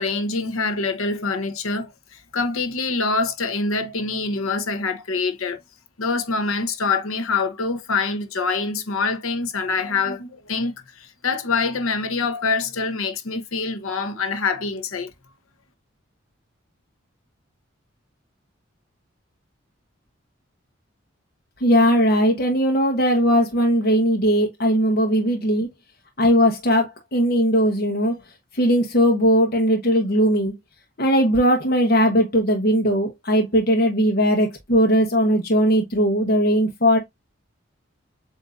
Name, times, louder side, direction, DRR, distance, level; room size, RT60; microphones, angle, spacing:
voice 1, 0.0-1.9 2.3-5.6 6.0-10.7 11.2-15.1, left 4 dB, 90° left, 0.9 m, -25 dB
voice 2, 21.6-25.7 26.2-28.1 28.5-30.5 31.0-37.0, equal, 45° left, 1.0 m, -19 dB
7.5 x 2.8 x 2.4 m
head